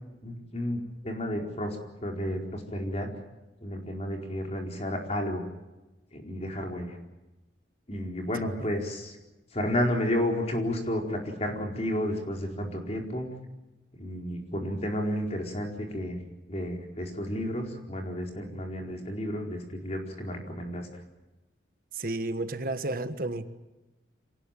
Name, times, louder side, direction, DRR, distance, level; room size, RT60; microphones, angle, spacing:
voice 1, 0.2-3.1 3.6-5.5 6.1-7.0 7.9-9.2 9.5-13.3 14.0-16.2 16.5-20.9, left 1 dB, 35° left, 2 dB, 4.5 m, -32 dB
voice 2, 21.9-23.5, right 2 dB, 50° right, 10 dB, 1.4 m, -32 dB
27.0 x 19.0 x 9.1 m, 1.1 s
head